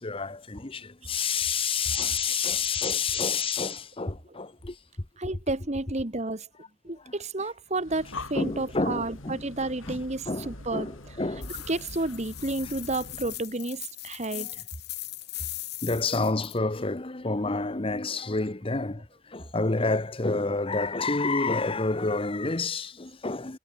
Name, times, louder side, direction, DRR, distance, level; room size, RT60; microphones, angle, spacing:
voice 1, 0.0-4.8 7.0-7.1 8.3-9.4 9.9-11.5 14.3-14.5 15.8-23.6, left 4 dB, 25° left, 1.0 m, -29 dB
voice 2, 5.2-6.5 6.8-10.9 11.7-14.5 17.5-17.6, right 2 dB, 35° right, 1.5 m, -31 dB
Breathing, 7.7-13.5, left 2 dB, 80° left, 6.6 m, -43 dB
sound 1, 11.4-16.6, left 16 dB, 55° left, 3.5 m, -39 dB
head